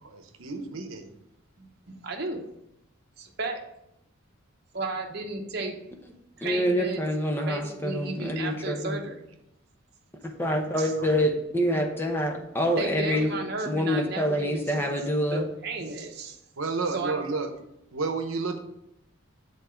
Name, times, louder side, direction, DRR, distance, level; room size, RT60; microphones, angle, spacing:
voice 1, 0.0-1.1 11.0-11.1 16.6-17.5 17.9-18.6, right 4 dB, 75° right, 6 dB, 0.9 m, -31 dB
voice 2, 1.6-2.4 3.2-3.6 4.7-5.8 6.4-7.0 7.5-9.2 10.8-10.9 12.8-16.4 16.9-17.4, right 3 dB, 50° right, 2 dB, 0.9 m, -34 dB
voice 3, 6.4-9.0 10.4-13.4 13.7-15.5, equal, 10° left, 2 dB, 0.9 m, -26 dB
7.1 x 4.0 x 5.1 m, 0.81 s
head